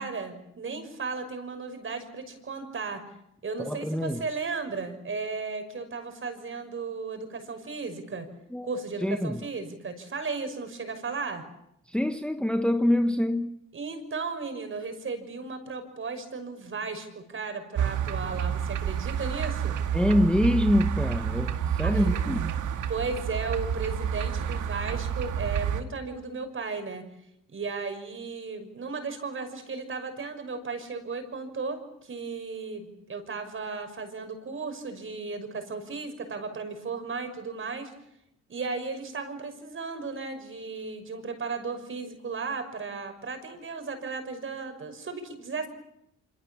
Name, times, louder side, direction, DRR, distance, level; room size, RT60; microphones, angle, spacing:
voice 1, 0.0-3.1 3.4-8.3 8.6-11.4 13.7-19.8 21.8-22.2 22.9-27.0 27.5-37.9 38.5-45.7, right 4 dB, 45° right, 6.0 m, -35 dB
voice 2, 3.6-4.2 8.5-8.7 9.0-9.4 11.9-13.6 19.9-22.4, left 1 dB, 5° left, 1.1 m, -25 dB
sound 1, 17.7-25.8, right 8 dB, 75° right, 2.0 m, -29 dB
27.0 x 26.0 x 7.2 m
cardioid pair, 90°, 30 cm